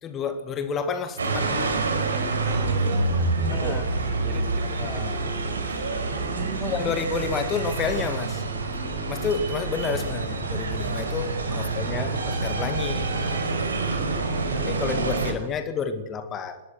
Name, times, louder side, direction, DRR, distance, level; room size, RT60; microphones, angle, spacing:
voice 1, 0.0-1.7 3.5-3.8 4.2-4.5 4.8-5.2 6.6-8.4 9.1-13.1 14.5-16.6, left 5 dB, 20° left, 9 dB, 2.1 m, -30 dB
sound 1, 1.2-15.3, right 3 dB, 65° right, 5.2 m, -27 dB
voice 2, 2.1-3.9 4.2-5.0 6.1-6.8 11.5-11.6, right 8 dB, 35° right, 8 dB, 3.1 m, -38 dB
24.5 x 20.5 x 6.3 m, 1.1 s
figure-of-eight pair, 110°, 0 cm